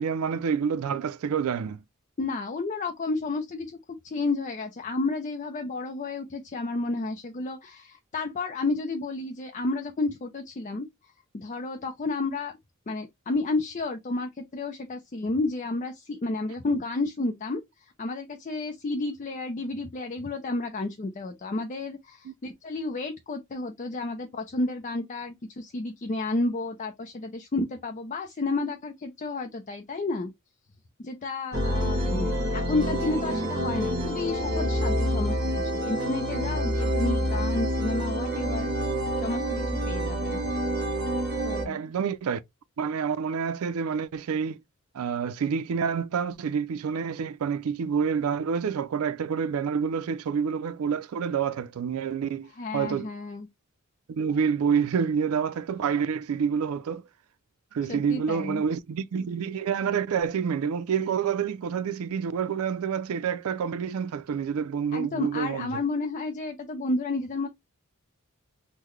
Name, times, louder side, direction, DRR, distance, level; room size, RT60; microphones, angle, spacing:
voice 1, 0.0-1.8 22.3-22.4 31.8-31.9 41.6-42.4 42.8-44.6 44.9-53.1 54.1-57.0 57.7-65.8, right 6 dB, 85° right, 0.4 m, -28 dB
voice 2, 2.2-3.8 4.0-10.9 11.3-12.5 12.9-17.6 18.0-30.3 31.0-38.7 39.2-40.4 41.4-41.8 52.6-53.5 57.9-58.6 64.9-67.5, left 3 dB, 35° left, 0.4 m, -31 dB
sound 1, 31.5-41.6, equal, 55° right, 1.4 m, -27 dB
3.7 x 2.1 x 3.0 m
head